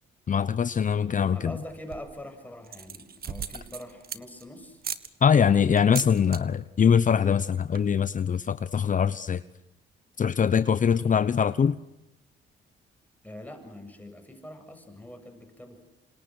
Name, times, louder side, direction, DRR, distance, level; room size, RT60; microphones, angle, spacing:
voice 1, 0.3-1.5 5.2-9.4 10.2-11.8, left 7 dB, 40° left, 13 dB, 1.0 m, -23 dB
voice 2, 1.2-4.8 13.2-15.9, left 1 dB, 10° left, 4 dB, 7.6 m, -43 dB
sound 1, 1.7-2.2 2.6-4.4 4.8-5.1 5.8-6.4 6.7-7.0 7.3-7.4 7.6-8.0, right 7 dB, 50° right, 1.9 m, -37 dB
28.0 x 26.5 x 6.4 m, 0.89 s
cardioid pair, 90°, 20 cm